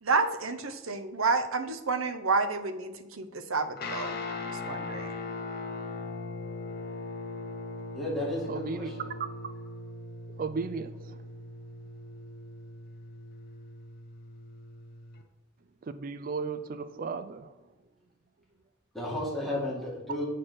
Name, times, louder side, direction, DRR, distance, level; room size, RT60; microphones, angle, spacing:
voice 1, 0.0-4.2 4.7-5.2, right 4 dB, 85° right, 9 dB, 0.8 m, -29 dB
Guitar, 3.8-15.2, left 3 dB, 50° left, 1.0 m, -40 dB
voice 2, 7.9-9.1 18.9-20.2, left 1 dB, ahead, -6 dB, 2.2 m, -33 dB
voice 3, 8.5-8.9 10.4-11.2 15.9-17.5, right 4 dB, 40° right, 11 dB, 0.4 m, -35 dB
7.9 x 4.2 x 6.2 m, 1.2 s
head